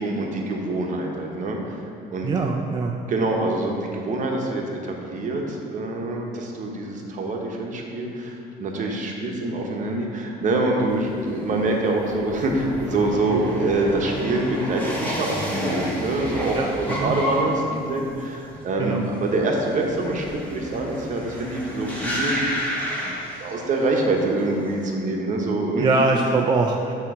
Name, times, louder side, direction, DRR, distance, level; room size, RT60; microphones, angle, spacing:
voice 1, 0.0-1.8 2.1-2.3 3.1-22.4 23.4-26.0, right 2 dB, 50° right, 0 dB, 0.9 m, -25 dB
voice 2, 2.2-3.0 16.6-17.2 18.8-19.1 25.8-26.9, right 3 dB, 25° right, 1 dB, 0.3 m, -23 dB
sound 1, 10.9-24.0 24.3-24.8, left 1 dB, 10° left, 1.2 m, -31 dB
7.6 x 2.9 x 4.8 m, 2.6 s
cardioid pair, 110°, 17 cm